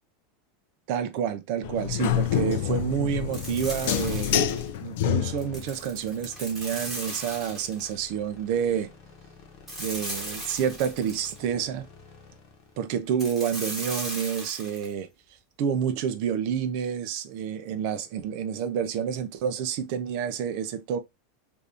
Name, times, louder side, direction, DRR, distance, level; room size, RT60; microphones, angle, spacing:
voice 1, 0.9-4.4 4.8-8.9 9.8-11.9 12.8-15.1 15.6-21.0, right 8 dB, 45° right, 0.5 m, -29 dB
sound 1, 1.6-5.7, left 10 dB, 60° left, 0.4 m, -27 dB
sound 2, 3.3-4.7 5.4-7.9 9.7-11.4 13.2-14.9, right 1 dB, 10° right, 1.1 m, -37 dB
sound 3, 5.1-14.3, left 4 dB, 35° left, 1.0 m, -51 dB
2.7 x 2.5 x 3.3 m
supercardioid pair, 175°, 0 cm